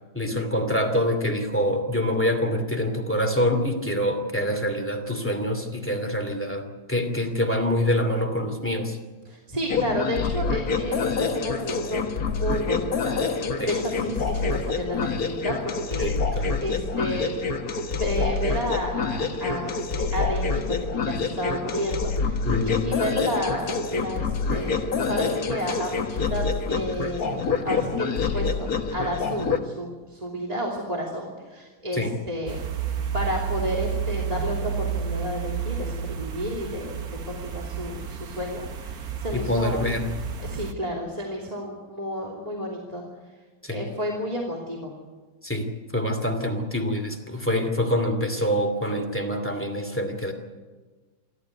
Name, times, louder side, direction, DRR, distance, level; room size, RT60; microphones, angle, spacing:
voice 1, 0.1-9.0 13.6-13.7 16.0-16.5 22.4-22.8 31.9-32.1 39.3-40.1 43.6-43.8 45.4-50.3, left 1 dB, 5° left, 6 dB, 2.5 m, -25 dB
voice 2, 9.2-17.3 17.9-22.4 22.6-32.6 33.1-37.0 37.2-40.0 40.4-43.0 43.7-44.9, equal, 20° right, -1 dB, 3.0 m, -31 dB
sound 1, 9.7-29.6, left 4 dB, 50° left, 1.9 m, -27 dB
sound 2, 32.5-40.7, right 7 dB, 50° right, 1.6 m, -31 dB
27.5 x 13.0 x 9.5 m, 1.3 s
omnidirectional pair, 2.2 m